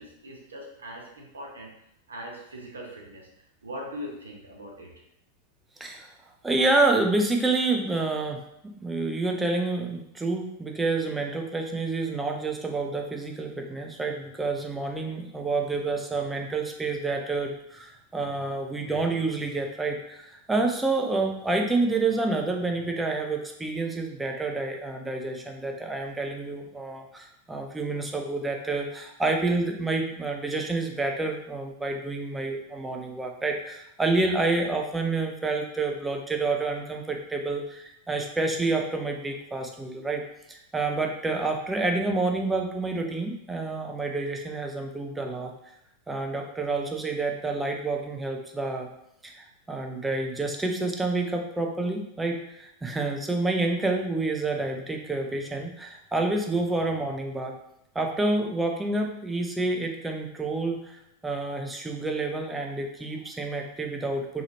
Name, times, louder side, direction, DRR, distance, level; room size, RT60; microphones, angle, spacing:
voice 1, 0.0-1.7 2.1-3.3 3.6-4.9, equal, 70° right, -1 dB, 0.5 m, -40 dB
voice 2, 6.4-40.2 40.5-45.5 46.1-48.9 49.2-57.5 58.0-64.4, right 3 dB, 10° right, 2 dB, 0.4 m, -28 dB
2.8 x 2.4 x 2.8 m, 0.78 s
figure-of-eight pair, 90°, 0 cm